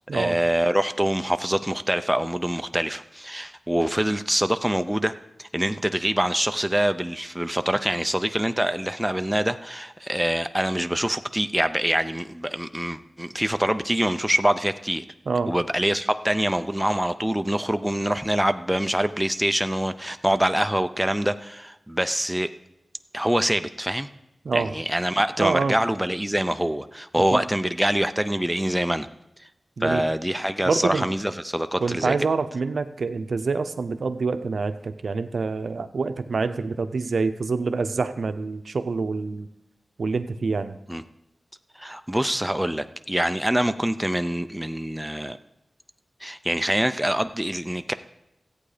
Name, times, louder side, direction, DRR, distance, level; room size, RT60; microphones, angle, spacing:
voice 1, 0.1-5.1 5.4-15.0 15.5-22.5 23.1-24.1 24.5-29.1 29.8-32.2 40.9-41.0 41.8-45.4 46.2-47.9, right 1 dB, 5° right, 10 dB, 0.6 m, -25 dB
voice 2, 25.4-25.8 27.3-27.4 29.8-30.0 30.6-31.1 31.8-39.5 40.0-40.8, right 4 dB, 80° right, 10 dB, 0.6 m, -26 dB
14.0 x 8.6 x 5.0 m, 0.88 s
wide cardioid pair, 65°, 0 cm